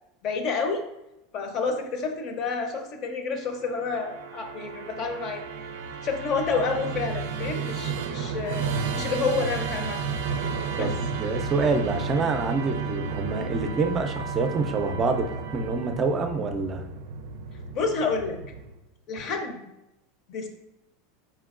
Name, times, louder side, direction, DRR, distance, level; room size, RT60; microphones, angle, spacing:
voice 1, 0.2-0.8 1.3-5.4 6.0-8.7 8.9-10.0 10.8-10.9 17.7-18.4 19.1-19.7 20.3-20.5, left 4 dB, 40° left, 5 dB, 0.7 m, -29 dB
Musical instrument, 3.5-18.9, right 5 dB, 85° right, 0.4 m, -32 dB
voice 2, 10.8-15.3 15.5-16.9, right 4 dB, 25° right, 6 dB, 0.5 m, -27 dB
4.5 x 4.3 x 2.4 m, 0.89 s
supercardioid pair, 145°, 0 cm